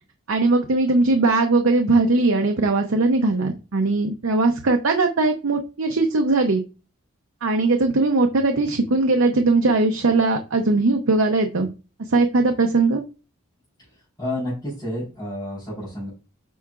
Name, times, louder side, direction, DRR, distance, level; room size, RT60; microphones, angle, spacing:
voice 1, 0.3-6.6 7.4-11.7 12.1-13.0, right 3 dB, 70° right, 4 dB, 0.7 m, -20 dB
voice 2, 13.8-16.1, left 1 dB, 20° left, -8 dB, 3.9 m, -30 dB
8.3 x 5.6 x 2.4 m, 0.32 s
head